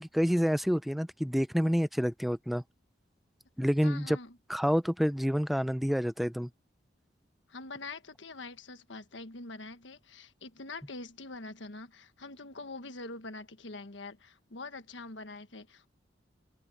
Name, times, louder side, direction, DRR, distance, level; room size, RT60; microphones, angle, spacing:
voice 1, 0.0-2.6 3.6-4.2 4.5-6.5, equal, ahead, 0.6 m, -28 dB
voice 2, 3.8-4.4 7.5-15.9, left 3 dB, 85° left, 1.4 m, -44 dB
head